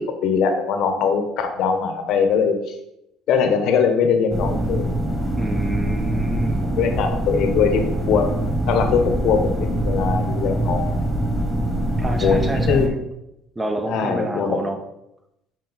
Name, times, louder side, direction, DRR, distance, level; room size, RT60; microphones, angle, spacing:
voice 1, 0.0-2.6 3.3-4.9 6.8-8.3 8.7-10.8 12.1-13.0 13.9-14.6, left 6 dB, 70° left, 7 dB, 0.8 m, -21 dB
sound 1, 4.3-12.9, right 1 dB, ahead, 1.9 m, -23 dB
voice 2, 5.4-6.7 12.0-13.0 13.6-14.8, right 1 dB, 20° right, 6 dB, 0.8 m, -28 dB
5.7 x 4.6 x 3.9 m, 0.86 s
supercardioid pair, 75°, 0 cm